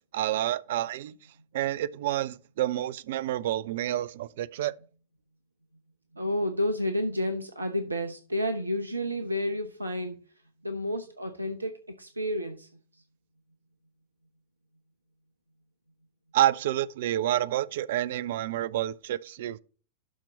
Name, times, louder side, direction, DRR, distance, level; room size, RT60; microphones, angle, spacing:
voice 1, 0.1-1.1 1.5-4.7 16.3-19.6, right 13 dB, 55° right, 0.4 m, -28 dB
voice 2, 6.1-10.2 10.6-12.7, left 1 dB, 80° right, 0.8 m, -30 dB
12.0 x 4.4 x 4.1 m
figure-of-eight pair, 90°, 0 cm